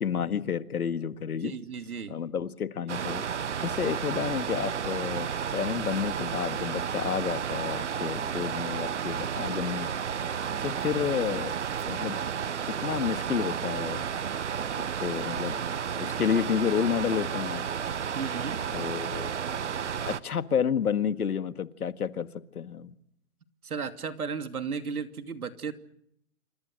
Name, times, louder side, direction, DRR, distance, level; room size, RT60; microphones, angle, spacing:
voice 1, 0.0-1.5 2.1-3.3 3.6-9.9 10.6-11.5 11.9-12.2 12.7-14.0 15.0-15.6 16.0-17.6 18.7-19.3 20.0-22.3 22.5-22.9, left 7 dB, 85° left, 12 dB, 1.9 m, -30 dB
voice 2, 1.4-2.2 10.5-10.8 18.1-18.6 23.6-25.7, right 5 dB, 85° right, 9 dB, 2.8 m, -35 dB
sound 1, 2.9-20.2, right 7 dB, 55° right, 1.1 m, -32 dB
28.0 x 25.5 x 6.5 m, 0.73 s
hypercardioid pair, 180°, 43 cm